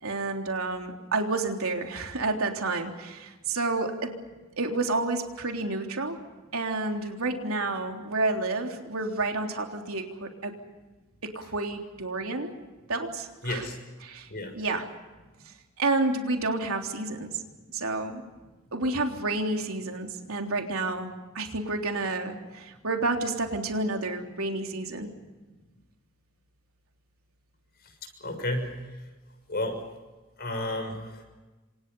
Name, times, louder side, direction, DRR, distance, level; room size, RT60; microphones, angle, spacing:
voice 1, 0.0-4.2 4.6-6.2 6.5-10.5 11.2-12.5 12.9-13.7 14.0-14.3 14.5-14.9 15.8-17.3 17.7-18.2 18.7-21.1 21.3-25.1, right 2 dB, 90° right, 3 dB, 3.6 m, -30 dB
voice 2, 13.4-13.8 14.3-14.5 28.2-28.7 29.5-29.8 30.4-31.2, left 1 dB, 45° left, 6 dB, 6.5 m, -31 dB
28.5 x 26.5 x 5.5 m, 1.2 s
head